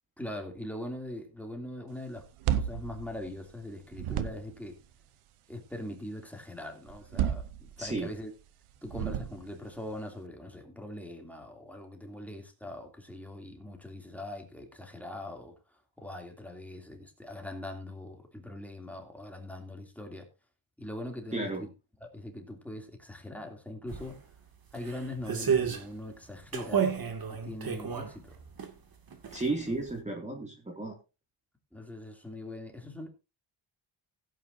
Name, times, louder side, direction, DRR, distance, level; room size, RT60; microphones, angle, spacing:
voice 1, 0.2-2.3 2.5-4.8 5.5-8.3 8.8-20.3 20.8-21.7 22.0-24.2 24.7-26.9 27.3-28.4 29.7-29.8 31.7-33.1, left 1 dB, 5° left, 2.8 m, -42 dB
sound 1, 2.2-3.6 3.9-4.7 6.9-8.1 8.8-9.7, right 10 dB, 85° right, 1.0 m, -32 dB
voice 2, 7.8-8.1 21.3-21.6 29.3-30.9, right 2 dB, 15° right, 2.4 m, -33 dB
sound 2, 23.9-24.0 24.7-25.9 26.5-28.7 29.1-29.6 29.9-30.0, right 7 dB, 45° right, 2.3 m, -31 dB
16.5 x 9.2 x 2.7 m
cardioid pair, 105°, 49 cm